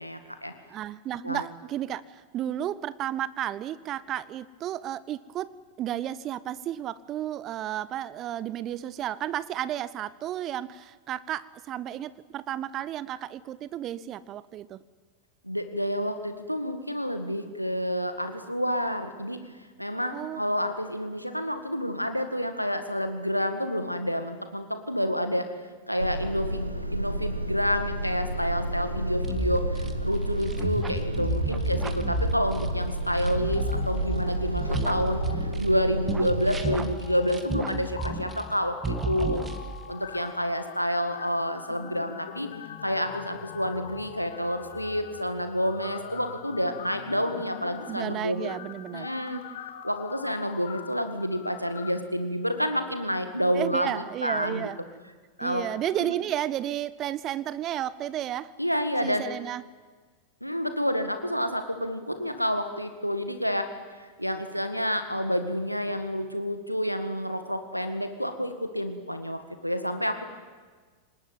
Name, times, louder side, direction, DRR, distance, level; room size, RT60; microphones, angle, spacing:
voice 1, 0.0-0.5 1.2-1.4 15.4-19.4 19.8-25.5 25.9-35.2 35.6-39.4 39.9-42.5 42.8-48.5 48.9-49.4 49.8-54.7 55.4-55.6 56.0-56.1 58.6-59.2 60.4-63.7 64.0-70.2, equal, 90° left, 8 dB, 1.9 m, -29 dB
voice 2, 0.7-14.8 20.1-20.4 47.8-49.1 53.5-54.8 55.4-58.5 59.0-59.6, right 12 dB, 35° right, 19 dB, 0.7 m, -33 dB
sound 1, 26.0-36.8, right 1 dB, 85° right, 1.6 m, -30 dB
sound 2, 29.2-35.8 36.1-38.6 38.8-39.9, right 2 dB, 15° right, 2.1 m, -32 dB
sound 3, 33.4-34.8 35.1-35.4 35.9-51.9, left 9 dB, 60° left, 2.1 m, -43 dB
25.5 x 19.5 x 9.4 m, 1.4 s
figure-of-eight pair, 90°, 0 cm